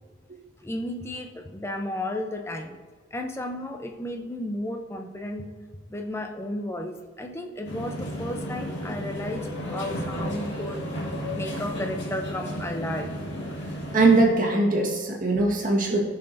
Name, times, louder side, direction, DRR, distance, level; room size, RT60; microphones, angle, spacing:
voice 1, 0.6-2.8 3.1-5.5 5.9-10.9 11.3-13.1, left 1 dB, 15° left, 4 dB, 0.6 m, -33 dB
sound 1, 7.6-14.2, equal, 65° left, 2.3 m, -33 dB
voice 2, 13.9-16.0, right 2 dB, 45° right, -1 dB, 1.6 m, -21 dB
14.5 x 5.7 x 2.7 m, 1.5 s
head